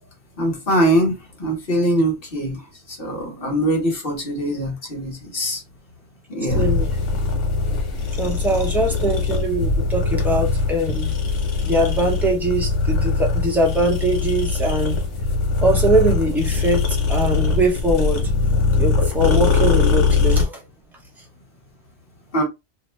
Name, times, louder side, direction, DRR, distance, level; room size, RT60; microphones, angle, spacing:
voice 1, 0.4-2.6 3.0-5.6 6.3-6.8 22.3-22.4, right 1 dB, 55° left, 1.3 m, -22 dB
sound 1, 6.5-20.4, left 4 dB, 90° left, 1.2 m, -21 dB
voice 2, 6.5-6.9 8.2-11.1 11.6-15.0 15.6-18.3 18.8-20.6, right 1 dB, ahead, 0.6 m, -22 dB
2.6 x 2.1 x 3.2 m
omnidirectional pair, 1.2 m